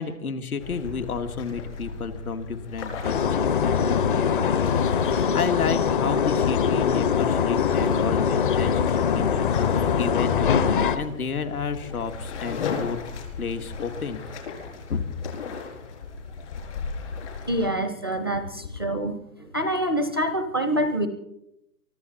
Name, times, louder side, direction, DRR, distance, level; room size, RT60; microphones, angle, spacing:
voice 1, 0.0-13.0 13.4-14.2 14.9-15.0, left 5 dB, 70° left, 8 dB, 2.3 m, -31 dB
sound 1, 0.6-17.7, left 5 dB, 50° left, 4.7 m, -37 dB
sound 2, 3.0-11.0, left 7 dB, 35° left, 1.0 m, -22 dB
voice 2, 17.5-19.2 19.5-21.1, right 1 dB, 15° right, 10 dB, 0.5 m, -26 dB
24.0 x 14.0 x 4.3 m, 0.81 s
hypercardioid pair, 155°, 45 cm